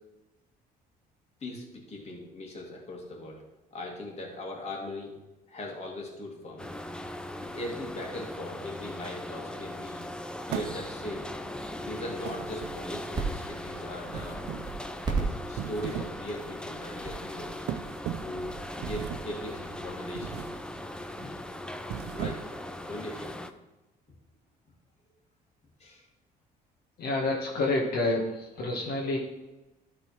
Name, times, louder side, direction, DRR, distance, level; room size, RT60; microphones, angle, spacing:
voice 1, 1.4-3.4 3.7-5.2 5.5-6.7 7.4-10.1 10.5-11.3 11.8-14.4 15.2-17.6 18.2-20.5 21.9-22.5 22.9-23.3 25.8-26.0, left 1 dB, 40° left, -1 dB, 2.5 m, -39 dB
sound 1, 6.6-23.5, left 1 dB, 5° left, 0.5 m, -39 dB
sound 2, 10.5-11.2 12.2-13.1 14.1-14.8 15.4-16.2 16.6-16.8 17.7-18.4 18.8-19.4 20.1-20.6 21.0-21.3 21.8-22.7, right 10 dB, 75° right, 0.6 m, -38 dB
sound 3, 12.9-19.8, right 4 dB, 25° right, 1.8 m, -34 dB
voice 2, 27.0-29.2, left 2 dB, 65° left, -2 dB, 1.7 m, -28 dB
12.5 x 4.2 x 4.7 m, 1.0 s
cardioid pair, 110°, 17 cm